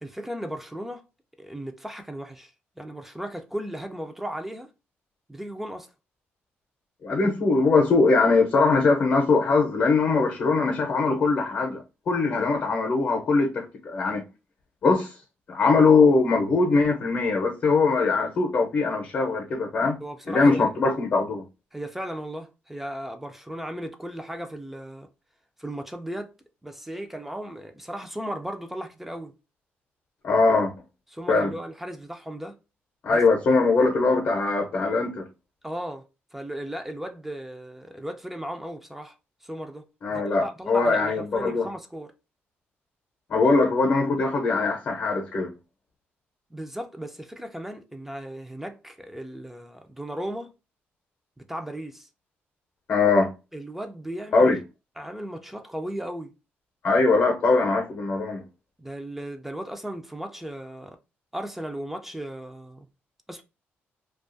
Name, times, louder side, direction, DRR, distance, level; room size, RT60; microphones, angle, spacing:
voice 1, 0.0-1.0 1.4-2.5 2.8-4.7 5.3-5.9 20.0-20.7 21.7-25.1 25.6-26.3 26.6-29.3 31.1-32.6 33.1-33.2 35.6-36.0 36.3-39.1 39.4-42.1 46.5-50.5 51.4-52.1 53.5-54.5 55.0-56.3 58.8-61.0 61.3-62.9 63.3-63.4, equal, 5° right, 0.4 m, -36 dB
voice 2, 7.0-14.2 14.8-15.2 15.5-20.0 20.3-21.4 30.2-30.7 31.3-31.5 33.0-35.3 40.0-41.7 43.3-45.5 52.9-53.3 54.3-54.6 56.8-58.4, left 3 dB, 55° left, 0.7 m, -21 dB
2.4 x 2.3 x 2.5 m
cardioid pair, 105°, 4 cm